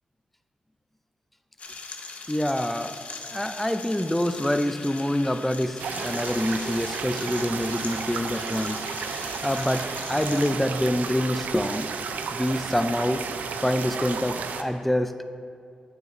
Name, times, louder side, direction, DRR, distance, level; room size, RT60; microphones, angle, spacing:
sound 1, 1.6-10.5, left 4 dB, 55° left, 0.6 m, -40 dB
voice 1, 2.3-3.0 3.3-8.8 9.4-11.9 12.3-13.2 13.6-15.2, left 1 dB, 5° left, 9 dB, 0.3 m, -26 dB
sound 2, 5.8-14.6, right 5 dB, 80° right, 0.4 m, -33 dB
9.2 x 6.1 x 2.5 m, 2.3 s
cardioid pair, 70°, 3 cm